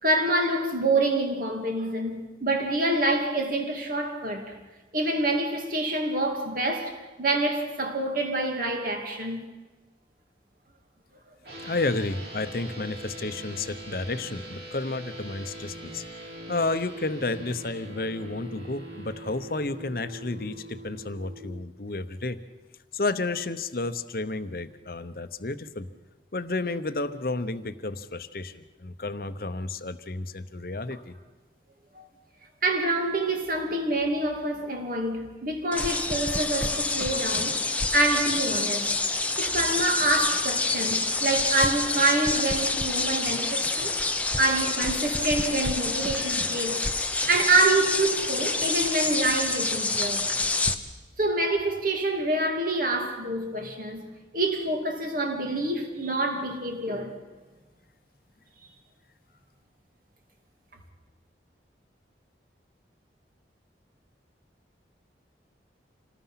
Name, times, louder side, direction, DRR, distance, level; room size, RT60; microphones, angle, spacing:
voice 1, 0.0-4.5 4.9-9.5 31.9-32.1 32.6-37.6 37.9-44.0 44.4-46.8 47.1-50.3 51.2-54.0 54.3-57.2, right 2 dB, 50° right, 2.6 m, -26 dB
sound 1, 11.4-21.4, right 1 dB, 70° right, 6.9 m, -42 dB
voice 2, 11.6-16.0 16.5-22.4 22.9-25.9 26.3-31.1, left 2 dB, 55° left, 0.9 m, -31 dB
sound 2, 35.7-50.7, left 3 dB, 10° left, 0.9 m, -27 dB
27.0 x 19.0 x 5.8 m
head